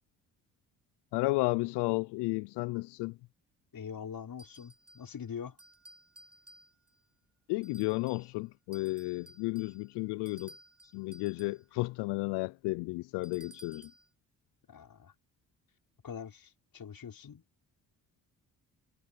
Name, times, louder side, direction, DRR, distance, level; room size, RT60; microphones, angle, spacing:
voice 1, 1.1-3.2 7.5-10.5 10.9-13.9, left 24 dB, 85° left, 0.5 m, -33 dB
voice 2, 3.7-5.6 14.7-15.1 16.0-17.4, left 7 dB, 60° left, 5.3 m, -43 dB
sound 1, 4.4-5.1 5.6-7.0 7.6-8.3 8.7-11.7 13.2-14.1, right 2 dB, 35° right, 6.8 m, -57 dB
supercardioid pair, 45°, 40 cm